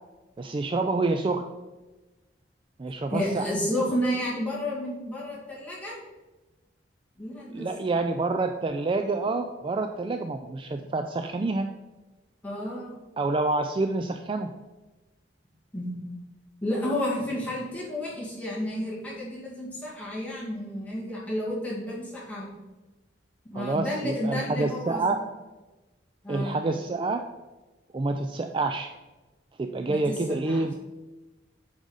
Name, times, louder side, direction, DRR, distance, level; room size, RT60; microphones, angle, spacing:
voice 1, 0.4-1.4 2.8-3.5 7.5-11.7 13.2-14.5 23.5-25.2 26.3-27.2 27.9-28.9 29.6-30.7, right 3 dB, 25° right, 6 dB, 0.3 m, -27 dB
voice 2, 3.1-6.0 7.2-7.7 12.4-13.0 15.7-16.0 16.6-22.5 23.4-25.0 26.2-26.6 29.9-30.2 30.5-30.7, left 1 dB, 10° left, -7 dB, 2.2 m, -31 dB
8.2 x 5.1 x 4.0 m, 1.1 s
head